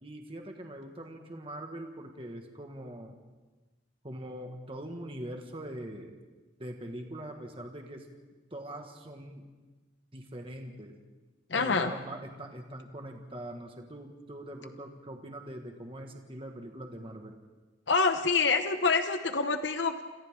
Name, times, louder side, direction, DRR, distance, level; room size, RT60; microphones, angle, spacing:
voice 1, 0.0-3.1 4.0-6.2 6.6-8.0 8.5-9.5 10.1-10.9 11.5-17.4, right 1 dB, 30° right, 3 dB, 1.7 m, -42 dB
voice 2, 11.5-11.9 17.9-20.0, left 4 dB, 70° left, 8 dB, 1.0 m, -26 dB
28.5 x 27.5 x 3.7 m, 1.2 s
head